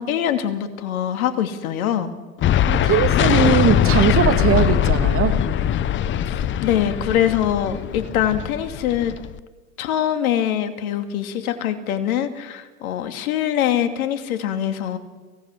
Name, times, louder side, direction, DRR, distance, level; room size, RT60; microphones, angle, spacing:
voice 1, 0.0-2.1 6.2-9.1 9.8-15.0, left 10 dB, 65° left, 9 dB, 2.7 m, -23 dB
sound 1, 2.4-9.4, left 10 dB, 25° left, 0.8 m, -21 dB
voice 2, 2.6-5.4, right 8 dB, 30° right, 10 dB, 2.1 m, -20 dB
23.5 x 17.5 x 8.3 m, 1.2 s
hypercardioid pair, 100°, 44 cm